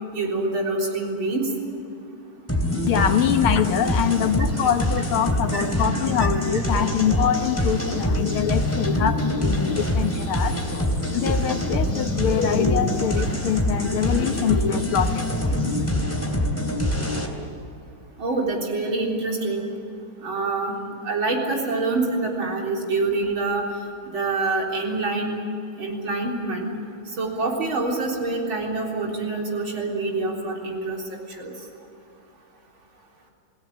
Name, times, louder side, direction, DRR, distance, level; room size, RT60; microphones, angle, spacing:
voice 1, 0.1-1.5 5.5-5.6 6.2-6.3 18.2-19.6 20.2-20.8 21.0-23.6 24.1-25.4 25.8-26.7 27.1-31.5, right 3 dB, 65° right, -1 dB, 4.6 m, -26 dB
sound 1, 2.5-17.3, left 1 dB, 5° left, 3.0 m, -24 dB
voice 2, 2.9-15.3 15.5-15.7, left 8 dB, 80° left, 7 dB, 2.2 m, -24 dB
28.5 x 18.0 x 8.5 m, 2.7 s
omnidirectional pair, 2.3 m